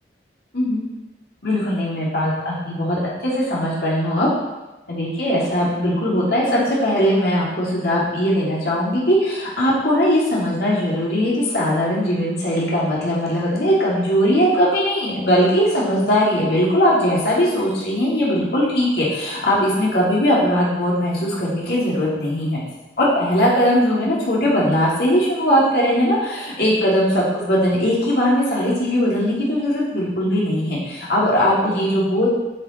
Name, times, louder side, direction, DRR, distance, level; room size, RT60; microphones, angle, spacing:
voice 1, 1.4-4.3 4.9-22.6 23.0-32.3, equal, 65° left, -6 dB, 2.7 m, -19 dB
9.7 x 5.8 x 4.3 m, 1.1 s
head